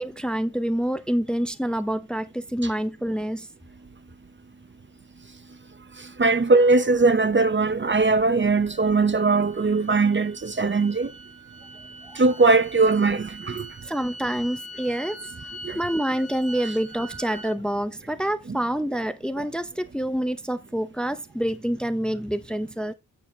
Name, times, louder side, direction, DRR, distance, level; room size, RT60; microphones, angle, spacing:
voice 1, 0.0-3.5 12.1-12.2 13.8-15.2 15.7-22.9, right 1 dB, ahead, 0.7 m, -27 dB
voice 2, 6.2-11.1 12.2-13.7 15.6-15.8 18.5-18.6 19.4-19.5, right 3 dB, 30° right, 0.8 m, -20 dB
sound 1, 8.4-17.5, right 1 dB, 50° left, 2.2 m, -42 dB
8.9 x 4.2 x 4.3 m
wide cardioid pair, 80°, 35 cm